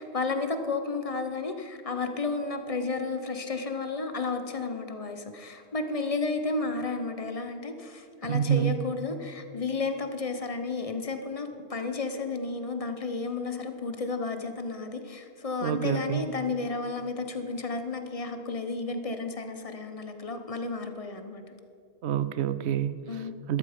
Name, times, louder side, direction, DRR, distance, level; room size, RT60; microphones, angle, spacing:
voice 1, 0.0-21.4 23.1-23.4, left 3 dB, 35° left, 7 dB, 0.9 m, -32 dB
voice 2, 8.2-8.7 15.6-16.2 22.0-23.6, right 9 dB, 75° right, 14 dB, 0.9 m, -28 dB
12.5 x 12.5 x 5.0 m, 2.5 s
omnidirectional pair, 1.1 m